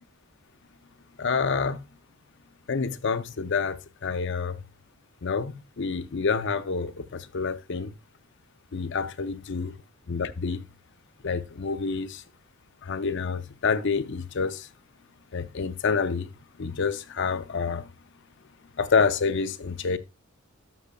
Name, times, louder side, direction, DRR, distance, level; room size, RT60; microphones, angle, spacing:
voice 1, 1.2-1.8 2.7-4.6 5.2-7.9 8.7-9.7 10.1-10.7 11.2-12.2 12.8-14.7 15.3-16.3 16.6-17.9 18.8-20.0, left 5 dB, 55° left, 0.6 m, -28 dB
12.0 x 6.5 x 2.3 m
head